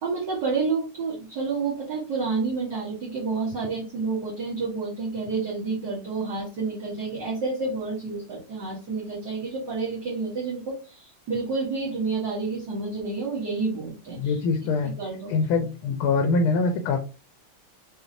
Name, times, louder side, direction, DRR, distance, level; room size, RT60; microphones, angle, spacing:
voice 1, 0.0-14.4 14.8-15.3, right 4 dB, 55° right, -6 dB, 1.9 m, -29 dB
voice 2, 14.2-14.9 15.3-17.0, left 4 dB, 80° left, 5 dB, 1.5 m, -23 dB
5.7 x 3.1 x 2.6 m, 0.34 s
omnidirectional pair, 2.4 m